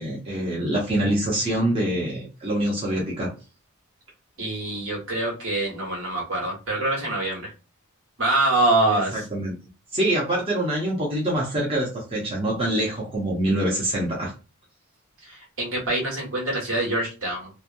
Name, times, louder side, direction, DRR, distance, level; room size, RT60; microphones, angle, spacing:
voice 1, 0.0-3.3 8.9-9.6 9.9-14.3, right 1 dB, 25° right, -3 dB, 0.7 m, -25 dB
voice 2, 4.4-7.5 8.2-9.2 15.2-17.5, right 2 dB, 70° right, -3 dB, 1.5 m, -25 dB
3.1 x 2.1 x 2.5 m, 0.32 s
head